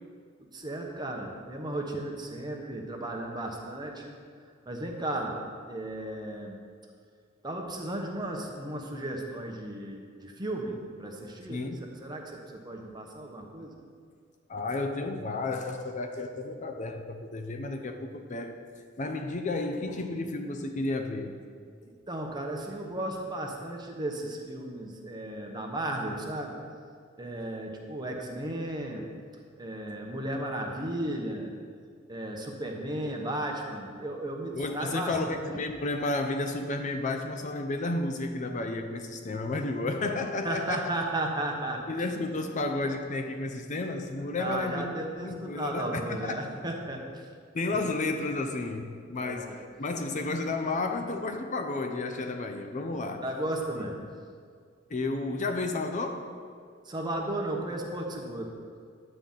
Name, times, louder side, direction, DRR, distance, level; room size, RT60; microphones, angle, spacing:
voice 1, 0.5-4.1 4.7-5.4 5.7-6.6 7.4-13.7 21.8-26.6 27.2-29.1 29.6-31.5 32.1-35.5 40.4-41.8 44.4-47.3 49.2-49.6 53.2-53.9 56.8-58.5, right 1 dB, 20° right, 1 dB, 1.0 m, -35 dB
voice 2, 11.5-11.9 14.5-18.6 19.0-21.4 34.5-40.9 41.9-44.9 45.2-46.4 47.5-53.3 54.9-56.4, left 2 dB, 40° left, 5 dB, 0.5 m, -32 dB
9.8 x 3.9 x 7.3 m, 2.1 s
head